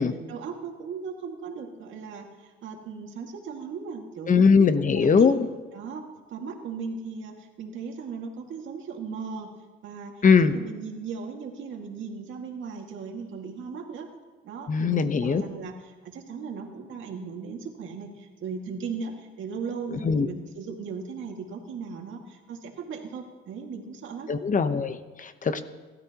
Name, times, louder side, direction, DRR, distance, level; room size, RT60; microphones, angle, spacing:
voice 1, 0.0-4.7 5.0-5.3 5.7-6.0 6.3-9.5 9.8-14.1 14.4-24.3, right 5 dB, 75° right, 2 dB, 2.1 m, -37 dB
voice 2, 4.3-5.4 10.2-10.5 14.7-15.4 19.9-20.3 24.3-25.6, left 5 dB, 40° left, 10 dB, 1.0 m, -21 dB
28.0 x 13.0 x 3.0 m, 1.2 s
cardioid pair, 90°, 20 cm